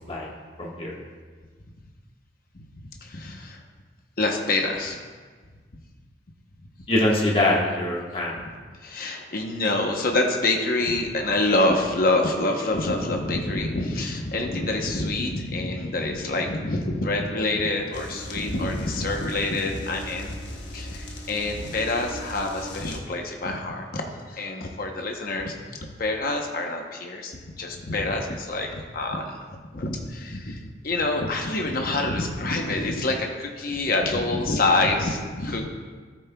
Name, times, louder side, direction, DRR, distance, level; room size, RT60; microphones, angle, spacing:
voice 1, 0.6-1.0 6.9-8.3, left 1 dB, 30° left, -4 dB, 1.5 m, -23 dB
voice 2, 3.0-3.6 4.2-5.0 8.8-20.4 20.7-25.5 26.0-29.4 29.7-35.7, left 2 dB, 50° left, 2 dB, 0.9 m, -26 dB
sound 1, 17.9-23.0, equal, 70° left, 1.2 m, -38 dB
14.0 x 8.4 x 2.3 m, 1.5 s
head